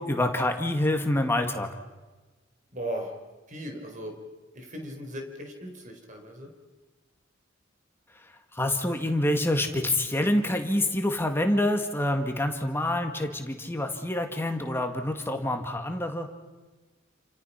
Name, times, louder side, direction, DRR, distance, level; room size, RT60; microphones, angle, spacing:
voice 1, 0.0-1.7 8.6-16.3, left 1 dB, 10° left, 4 dB, 2.1 m, -27 dB
voice 2, 2.7-3.2 3.5-4.2 4.5-6.5, equal, 40° right, 4 dB, 4.7 m, -37 dB
29.0 x 28.0 x 5.9 m, 1.2 s
head